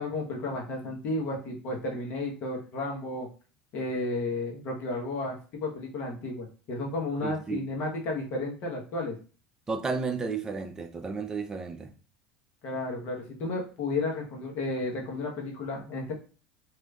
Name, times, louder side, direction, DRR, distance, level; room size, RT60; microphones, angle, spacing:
voice 1, 0.0-3.3 3.7-9.2 12.6-16.1, left 2 dB, 55° left, 1.1 m, -33 dB
voice 2, 7.2-7.6 9.7-11.9, right 4 dB, 20° right, 0.5 m, -32 dB
3.2 x 3.1 x 2.4 m
supercardioid pair, 120°, 3 cm